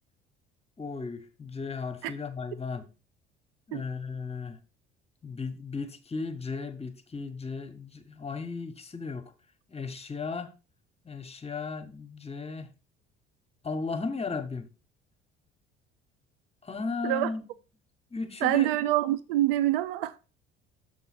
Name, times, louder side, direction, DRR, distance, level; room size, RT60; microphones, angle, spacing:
voice 1, 0.8-2.9 3.7-4.6 5.2-9.3 9.7-10.5 11.0-12.7 13.6-14.7 16.6-17.5 18.1-18.7, left 4 dB, 20° left, 1.2 m, -35 dB
voice 2, 18.4-20.2, right 14 dB, 75° right, 0.5 m, -26 dB
6.7 x 6.5 x 4.3 m
hypercardioid pair, 60°, 29 cm